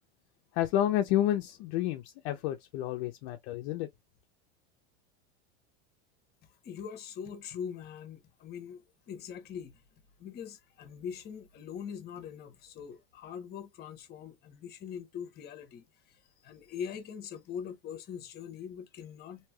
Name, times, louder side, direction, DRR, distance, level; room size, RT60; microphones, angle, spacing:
voice 1, 0.5-3.9, left 12 dB, 50° left, 0.5 m, -30 dB
voice 2, 6.6-9.8 10.2-15.8 16.4-19.5, left 7 dB, 30° left, 0.9 m, -42 dB
3.2 x 2.7 x 2.2 m
supercardioid pair, 140°, 32 cm